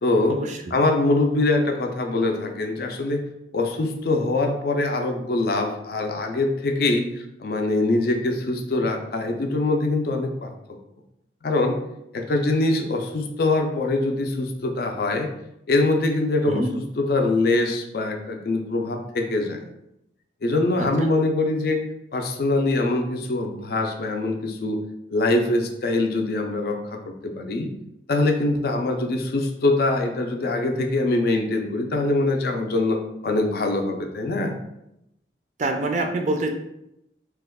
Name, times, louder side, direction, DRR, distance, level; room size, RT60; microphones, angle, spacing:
voice 1, 0.0-0.4 0.7-3.2 3.5-10.5 11.4-11.8 12.1-15.3 15.7-16.6 17.0-19.6 20.4-21.8 22.1-24.8 25.1-27.7 28.1-34.5, left 2 dB, 55° left, 4 dB, 0.4 m, -23 dB
voice 2, 35.6-36.5, right 2 dB, 40° right, 4 dB, 0.3 m, -26 dB
2.9 x 2.2 x 3.5 m, 0.83 s
head